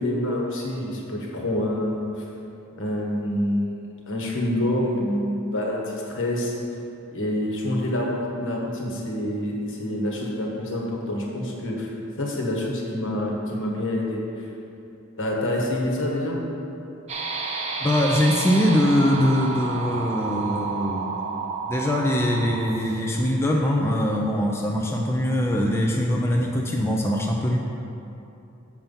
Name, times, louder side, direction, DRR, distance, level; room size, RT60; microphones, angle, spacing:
voice 1, 0.0-2.3 2.8-3.7 4.1-6.5 7.1-14.2 15.2-16.4, left 1 dB, 60° left, -2 dB, 1.3 m, -27 dB
sound 1, 17.1-23.2, right 4 dB, 30° right, 0.7 m, -31 dB
voice 2, 17.8-21.2 21.7-27.6, left 1 dB, 10° left, -1 dB, 0.4 m, -22 dB
7.2 x 5.4 x 5.5 m, 2.8 s
head